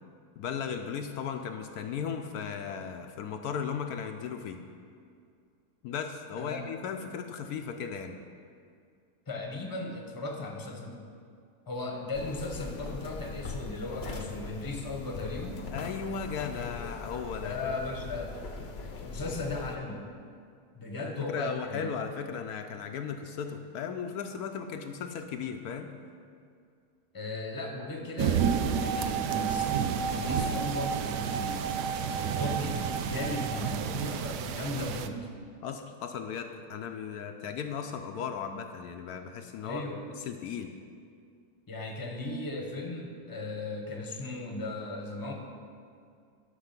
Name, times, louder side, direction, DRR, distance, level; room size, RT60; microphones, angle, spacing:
voice 1, 0.4-4.6 5.8-8.2 15.7-17.6 21.0-25.9 35.6-39.8 40.2-40.7, left 7 dB, 75° left, 5 dB, 1.1 m, -36 dB
voice 2, 9.3-11.0 11.7-15.6 17.4-18.4 18.8-20.1 20.7-21.9 27.1-35.3 39.6-40.1 41.7-45.3, left 2 dB, 15° left, 1 dB, 0.9 m, -37 dB
sound 1, 12.1-19.8, left 4 dB, 50° left, 0.9 m, -41 dB
sound 2, 28.2-35.1, right 8 dB, 90° right, 1.2 m, -32 dB
sound 3, 28.4-34.8, right 6 dB, 60° right, 0.6 m, -35 dB
11.5 x 6.1 x 5.9 m, 2.3 s
omnidirectional pair, 1.7 m